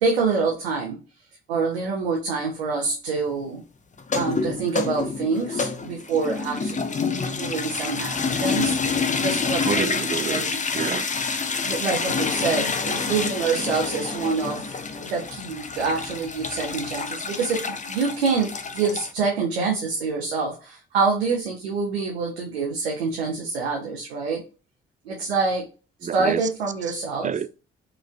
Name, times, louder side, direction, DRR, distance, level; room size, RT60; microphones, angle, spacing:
voice 1, 0.0-1.0 1.5-3.6 4.1-7.1 7.4-9.9 10.3-10.6 11.6-14.6 15.0-24.4 25.0-25.7 26.1-27.3, right 4 dB, 85° right, 0.7 m, -26 dB
sound 1, 4.0-19.1, left 4 dB, 25° left, 0.6 m, -28 dB
voice 2, 7.0-7.4 9.6-10.5 10.7-11.1 26.0-26.5 26.9-27.0 27.2-27.5, right 7 dB, 25° right, 0.4 m, -28 dB
4.6 x 3.2 x 2.2 m
figure-of-eight pair, 40°, 30 cm